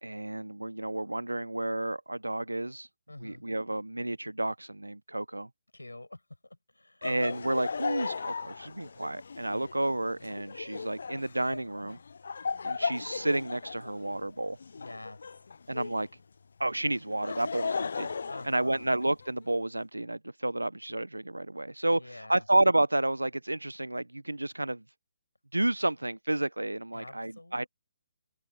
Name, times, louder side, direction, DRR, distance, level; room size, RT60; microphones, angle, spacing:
voice 1, 0.0-2.9 3.2-5.5 7.0-12.0 12.6-14.6 15.7-16.1 16.6-18.1 18.4-24.8 25.5-27.7, right 1 dB, 90° right, 0.7 m, -31 dB
voice 2, 3.1-3.4 5.7-7.1 9.5-9.7 14.8-15.5 18.2-18.9 21.9-22.5 26.9-27.7, left 2 dB, 90° left, 7.4 m, -47 dB
Laughter, 7.0-16.1 16.9-19.3, left 5 dB, 65° left, 0.4 m, -37 dB
open air
figure-of-eight pair, 140°, 0 cm